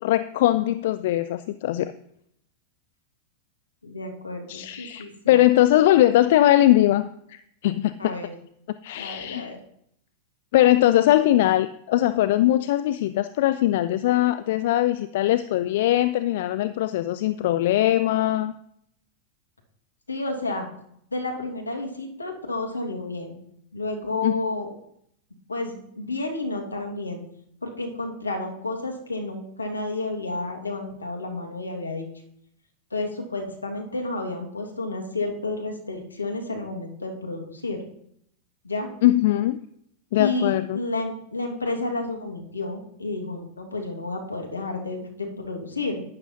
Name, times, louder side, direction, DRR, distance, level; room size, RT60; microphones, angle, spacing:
voice 1, 0.0-1.9 4.5-7.9 8.8-9.5 10.5-18.5 24.2-24.3 39.0-39.6 40.1-40.8, left 14 dB, 55° left, 14 dB, 0.3 m, -21 dB
voice 2, 3.8-5.3 8.0-8.3 9.0-9.6 20.1-20.7 21.1-23.4 23.7-24.7 25.5-27.2 27.6-32.1 32.9-37.8 38.6-38.9 40.1-46.0, left 2 dB, 80° left, 2 dB, 1.9 m, -31 dB
11.5 x 9.5 x 2.8 m, 0.72 s
figure-of-eight pair, 90°, 0 cm